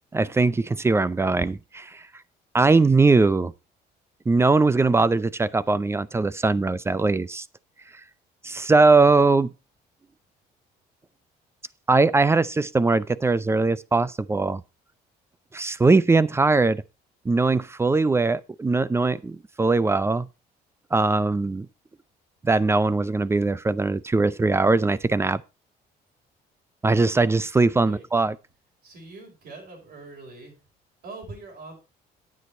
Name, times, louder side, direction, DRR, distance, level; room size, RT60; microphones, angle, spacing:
voice 1, 0.1-2.0 2.5-3.5 4.3-7.4 8.4-9.5 11.9-14.6 15.5-16.8 17.3-20.3 20.9-21.7 22.4-25.4 26.8-28.3, right 3 dB, 15° right, 0.4 m, -21 dB
voice 2, 28.8-30.6 31.0-31.7, right 3 dB, 70° right, 5.1 m, -42 dB
9.3 x 8.3 x 4.3 m
cardioid pair, 110°, 17 cm